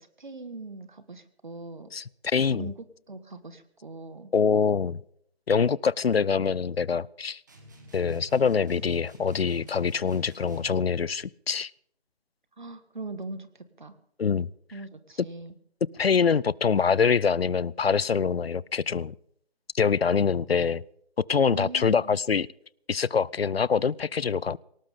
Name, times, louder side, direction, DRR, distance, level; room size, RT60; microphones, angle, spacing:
voice 1, 0.0-1.9 2.5-4.3 12.6-14.0 14.7-15.5 21.5-22.2, right 3 dB, 45° right, 12 dB, 1.6 m, -41 dB
voice 2, 1.9-2.6 4.3-5.0 5.5-7.4 7.9-11.7 14.2-14.5 16.0-19.1 19.7-20.8 21.3-22.5 22.9-24.6, left 6 dB, 70° left, 25 dB, 0.5 m, -24 dB
sound 1, 7.5-10.9, right 2 dB, 20° right, 1.8 m, -50 dB
19.0 x 18.5 x 3.7 m, 0.70 s
figure-of-eight pair, 170°, 32 cm